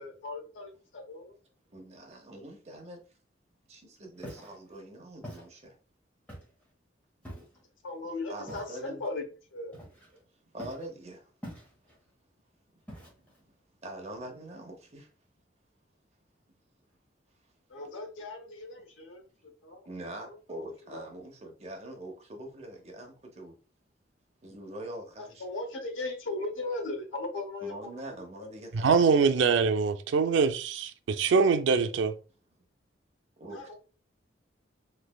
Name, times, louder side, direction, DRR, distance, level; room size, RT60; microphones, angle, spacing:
voice 1, 0.0-1.4 7.8-9.2 9.5-9.8 17.7-19.9 20.2-21.0 25.2-28.5 33.5-33.7, left 2 dB, 85° left, 0.8 m, -38 dB
voice 2, 1.7-3.0 3.7-5.7 8.3-9.0 10.5-11.3 13.8-15.1 19.8-23.5 24.4-25.4 27.6-29.0 33.4-33.7, right 1 dB, 35° right, 0.8 m, -43 dB
Walk footsteps, 4.2-4.6 5.2-5.5 6.3-6.6 7.2-7.6 8.5-8.8 9.7-10.2 10.6-10.9 11.4-12.0 12.9-13.4, equal, 10° left, 1.1 m, -44 dB
voice 3, 28.7-32.1, right 5 dB, 75° right, 0.4 m, -24 dB
3.2 x 3.2 x 2.2 m
head